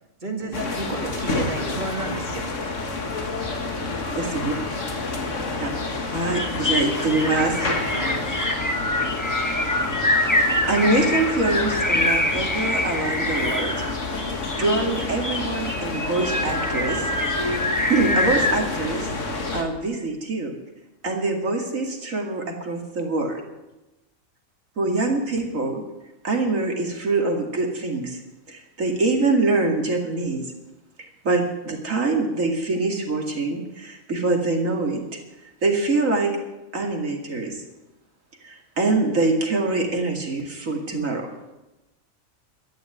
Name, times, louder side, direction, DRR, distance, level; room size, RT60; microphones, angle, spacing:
voice 1, 0.2-2.6 7.3-8.3, right 2 dB, 35° right, 3 dB, 2.0 m, -32 dB
sound 1, 0.5-19.6, left 3 dB, 60° left, 2.0 m, -29 dB
voice 2, 4.1-4.5 5.6-5.7 6.1-7.7 9.9-10.0 10.7-13.8 14.2-17.4 17.9-20.5 21.0-23.4 24.8-25.8 26.2-28.2 28.5-30.5 31.2-35.2 35.6-36.3 36.7-37.6 38.4-41.3, right 3 dB, 70° right, 1 dB, 2.7 m, -24 dB
sound 2, 6.3-18.6, left 1 dB, 15° left, 1.3 m, -25 dB
13.0 x 10.5 x 8.0 m, 0.99 s
omnidirectional pair, 1.4 m